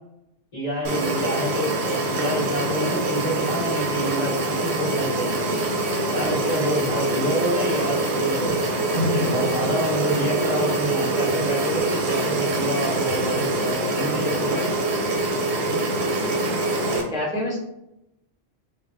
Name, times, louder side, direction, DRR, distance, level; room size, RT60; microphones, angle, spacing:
voice 1, 0.5-5.4 6.1-8.7 9.0-14.8, equal, 35° left, -7 dB, 1.3 m, -28 dB
sound 1, 0.8-17.0, right 2 dB, 65° right, 0.8 m, -24 dB
voice 2, 6.3-6.7 16.7-17.6, left 1 dB, 5° right, -6 dB, 0.3 m, -30 dB
3.4 x 2.2 x 2.5 m, 0.82 s
omnidirectional pair, 1.2 m